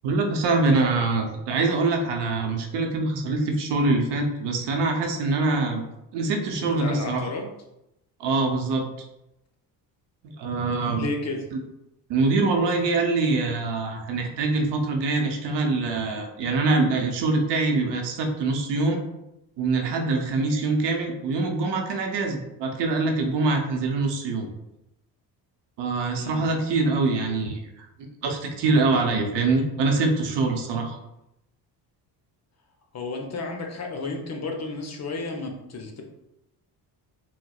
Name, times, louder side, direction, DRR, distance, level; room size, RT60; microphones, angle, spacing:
voice 1, 0.0-5.8 6.1-7.3 8.2-8.9 10.2-11.0 11.5-11.6 12.1-19.0 19.6-24.5 25.8-27.9 28.2-31.0, right 3 dB, 70° right, 3 dB, 0.7 m, -24 dB
voice 2, 6.6-7.5 10.9-11.5 26.1-26.5 32.9-36.0, left 3 dB, 40° left, 2 dB, 0.6 m, -32 dB
4.1 x 2.0 x 2.3 m, 0.86 s
supercardioid pair, 75°, 44 cm